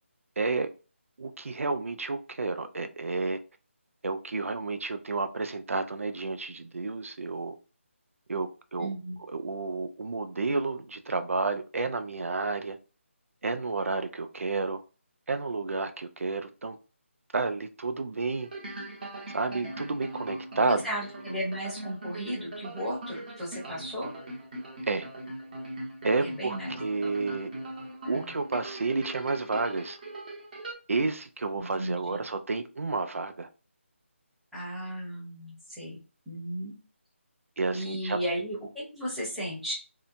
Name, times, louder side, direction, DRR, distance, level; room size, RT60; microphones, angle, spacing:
voice 1, 0.4-0.7 1.2-3.4 4.0-7.6 8.3-8.9 9.3-12.8 13.4-14.8 15.3-16.8 17.3-18.5 19.3-20.8 24.9-25.1 26.0-27.5 28.1-30.0 30.9-33.5 37.6-38.2, right 3 dB, 80° right, 0.4 m, -30 dB
voice 2, 8.8-9.2 20.6-24.1 26.2-26.8 28.0-28.3 31.5-32.2 34.5-36.0 36.3-36.7 37.7-39.7, equal, ahead, 0.8 m, -35 dB
sound 1, 18.4-30.7, right 1 dB, 40° right, 1.0 m, -40 dB
2.7 x 2.1 x 2.6 m
figure-of-eight pair, 165°, 7 cm